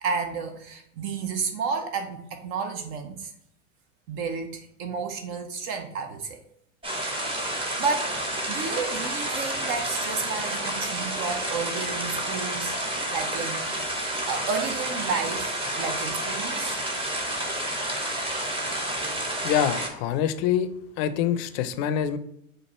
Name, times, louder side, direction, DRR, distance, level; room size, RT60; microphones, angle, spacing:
voice 1, 0.0-3.3 4.1-6.4 7.3-8.1 8.5-14.0 14.3-16.8, right 5 dB, 50° right, 5 dB, 0.6 m, -32 dB
sound 1, 6.8-19.9, right 1 dB, 15° right, 0.8 m, -30 dB
voice 2, 19.4-20.7 21.0-22.2, left 9 dB, 50° left, 12 dB, 0.5 m, -25 dB
4.5 x 2.6 x 4.1 m, 0.75 s
hypercardioid pair, 90°, 40 cm